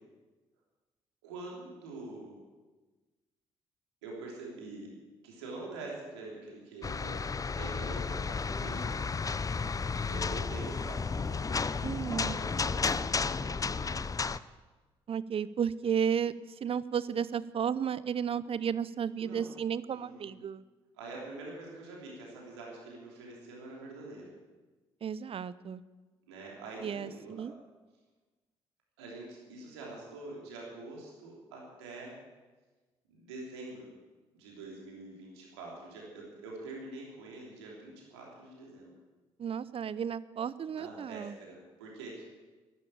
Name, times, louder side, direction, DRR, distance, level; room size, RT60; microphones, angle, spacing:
voice 1, 1.2-2.4 4.0-4.9 5.2-7.2 7.6-9.0 10.1-11.6 12.0-14.0 19.2-19.5 19.9-20.3 21.0-24.3 26.3-27.5 29.0-32.1 33.1-33.9 34.3-38.9 40.7-42.2, right 2 dB, 80° right, -3 dB, 3.2 m, -45 dB
sound 1, 6.8-14.4, left 4 dB, 25° left, 0.6 m, -33 dB
voice 2, 11.8-12.3 15.1-16.3 16.6-20.6 25.0-25.8 26.8-27.5 39.4-41.3, right 8 dB, 45° right, 18 dB, 0.6 m, -33 dB
12.5 x 11.5 x 8.7 m, 1.3 s
hypercardioid pair, 45°, 14 cm